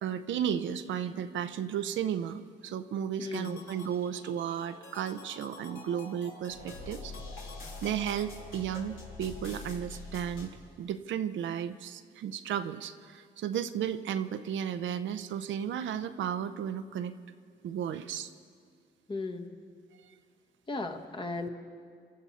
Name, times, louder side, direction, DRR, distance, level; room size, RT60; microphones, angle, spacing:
voice 1, 0.0-7.1 7.8-10.5 10.8-17.2 17.6-18.3, right 9 dB, 70° right, 10 dB, 0.7 m, -34 dB
voice 2, 3.2-3.6 19.1-19.6 20.7-21.5, left 3 dB, 25° left, 3 dB, 1.4 m, -36 dB
sound 1, 3.3-10.5, left 3 dB, 80° left, 3.5 m, -45 dB
26.0 x 13.0 x 4.2 m, 2.1 s
cardioid pair, 90°, 20 cm